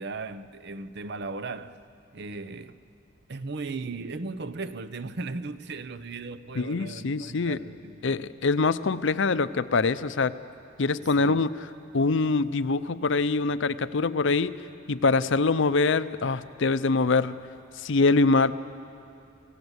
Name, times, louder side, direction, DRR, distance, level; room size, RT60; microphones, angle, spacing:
voice 1, 0.0-1.8 2.1-2.8 3.3-8.2 11.2-11.4, right 3 dB, 55° right, 0.7 m, -37 dB
voice 2, 6.6-7.6 8.0-10.4 10.8-11.5 11.9-14.6 14.9-17.4 17.8-18.6, left 3 dB, 65° left, 0.6 m, -24 dB
29.0 x 16.5 x 8.1 m
head